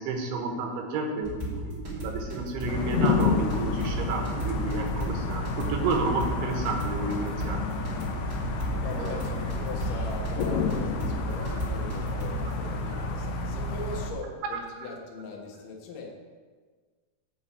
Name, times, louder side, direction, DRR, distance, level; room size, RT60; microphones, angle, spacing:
voice 1, 0.0-7.8 9.0-9.3 11.3-11.5 12.9-13.0 14.5-14.6, right 3 dB, 75° right, 2 dB, 3.5 m, -31 dB
sound 1, 1.2-12.7, equal, 25° right, 2.0 m, -35 dB
sound 2, 2.7-14.1, left 3 dB, 80° left, 2.3 m, -30 dB
voice 2, 8.8-16.1, left 3 dB, 65° left, -1 dB, 2.1 m, -40 dB
7.8 x 5.8 x 7.9 m, 1.5 s
omnidirectional pair, 5.8 m